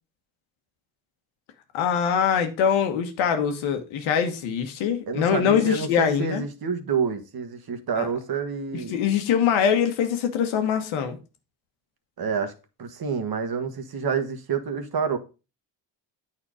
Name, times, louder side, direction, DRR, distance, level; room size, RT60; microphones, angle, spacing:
voice 1, 1.7-6.4 8.0-8.1 8.7-11.2, left 7 dB, 80° left, 1.4 m, -23 dB
voice 2, 5.1-9.0 12.2-12.5 12.8-15.2, right 5 dB, 50° right, 1.6 m, -28 dB
8.7 x 4.3 x 4.9 m
supercardioid pair, 65°, 47 cm